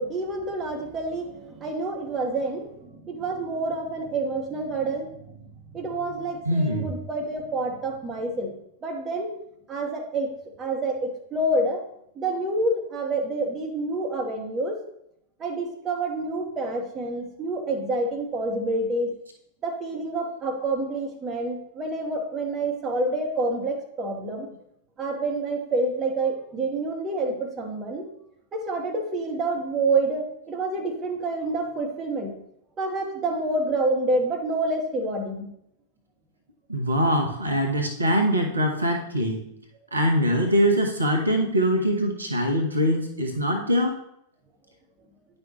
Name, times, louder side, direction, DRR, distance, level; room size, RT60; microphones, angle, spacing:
voice 1, 0.0-8.6 8.8-9.3 9.7-10.3 10.6-11.8 12.1-14.8 15.4-19.1 19.6-24.5 25.0-28.1 28.5-32.4 32.8-35.5, right 2 dB, 25° right, 2 dB, 1.3 m, -28 dB
voice 2, 6.5-6.9 36.7-39.4 39.9-43.9, equal, 80° right, 2 dB, 1.0 m, -23 dB
9.6 x 5.4 x 3.0 m, 0.74 s
figure-of-eight pair, 90°, 0 cm